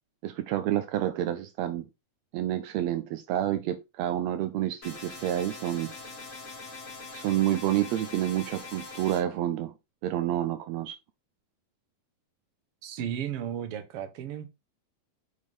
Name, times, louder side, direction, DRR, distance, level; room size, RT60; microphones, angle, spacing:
voice 1, 0.2-1.9 2.3-5.9 7.1-9.7 10.0-10.9, right 12 dB, 80° right, 1.5 m, -29 dB
sound 1, 4.8-9.2, left 3 dB, 20° left, 2.4 m, -42 dB
voice 2, 12.8-14.5, right 9 dB, 60° right, 1.7 m, -34 dB
8.1 x 4.9 x 3.5 m
omnidirectional pair, 3.6 m